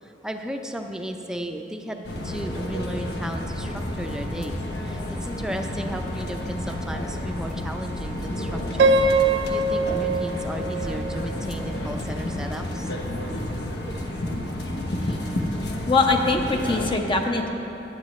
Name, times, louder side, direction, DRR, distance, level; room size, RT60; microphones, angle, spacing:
voice 1, 0.0-12.9, equal, 5° right, 4 dB, 0.6 m, -35 dB
sound 1, 2.0-17.0, left 1 dB, 65° left, 1.1 m, -30 dB
Piano, 8.8-11.8, right 3 dB, 70° right, 0.5 m, -23 dB
voice 2, 15.9-17.5, left 3 dB, 30° left, 3 dB, 0.8 m, -22 dB
15.5 x 10.0 x 3.2 m, 3.0 s
head